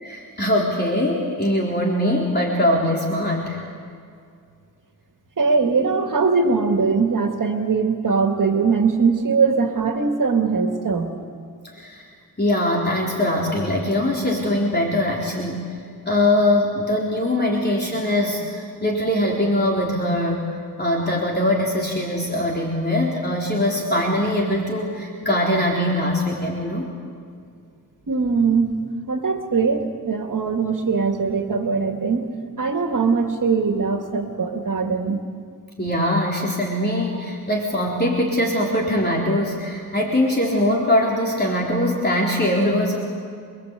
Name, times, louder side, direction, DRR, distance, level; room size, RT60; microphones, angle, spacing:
voice 1, 0.0-3.6 11.7-12.1 12.4-15.7 16.1-20.4 20.8-26.9 35.8-43.0, left 1 dB, 30° left, -3 dB, 4.0 m, -22 dB
voice 2, 5.4-11.1 28.1-32.3 32.6-35.2, right 5 dB, 65° right, 4 dB, 2.3 m, -21 dB
27.0 x 22.5 x 8.3 m, 2.3 s
wide cardioid pair, 100°, 35 cm